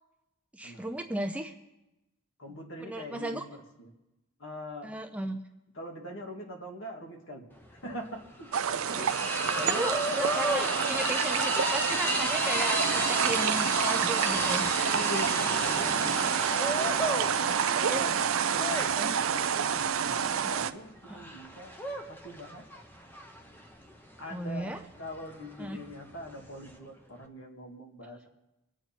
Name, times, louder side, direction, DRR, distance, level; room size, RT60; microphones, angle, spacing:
voice 1, 0.5-1.5 2.8-3.4 4.8-5.4 9.0-14.7 17.4-18.0 19.0-19.1 24.3-24.8 25.6-25.8, right 1 dB, 5° right, 5 dB, 0.6 m, -36 dB
voice 2, 2.4-3.4 3.8-3.9 4.4-4.9 5.7-7.5 7.7-9.0 9.5-9.9 10.6-10.7 14.9-16.5 17.1-18.2 18.5-21.7 22.1-22.8 24.2-28.3, left 1 dB, 60° left, 2 dB, 2.2 m, -43 dB
sound 1, 7.6-7.7 7.9-26.8, equal, 10° left, 1.0 m, -34 dB
sound 2, 8.5-20.7, right 7 dB, 75° right, 0.6 m, -28 dB
25.0 x 8.8 x 4.5 m, 0.96 s
head